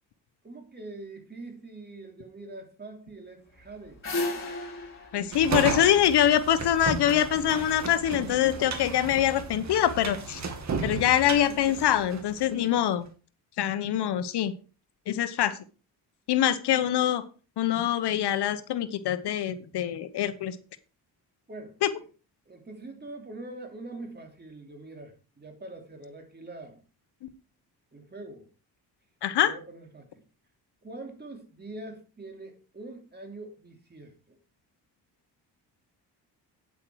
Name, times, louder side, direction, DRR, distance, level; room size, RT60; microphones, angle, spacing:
voice 1, 0.4-4.0 11.3-12.2 21.5-21.8 22.5-26.8 27.9-28.5 29.4-30.2 30.8-34.4, right 2 dB, 25° right, 3.0 m, -44 dB
sound 1, 3.5-6.7, left 2 dB, 30° left, 5.2 m, -34 dB
voice 2, 5.1-10.4 10.8-13.1 13.6-14.5 15.1-15.5 16.3-17.2 17.6-20.5 21.8-21.9 29.2-29.5, left 11 dB, 70° left, 1.0 m, -24 dB
sound 2, 5.3-12.5, right 4 dB, 40° right, 2.4 m, -34 dB
9.2 x 8.3 x 4.7 m
cardioid pair, 105°, 41 cm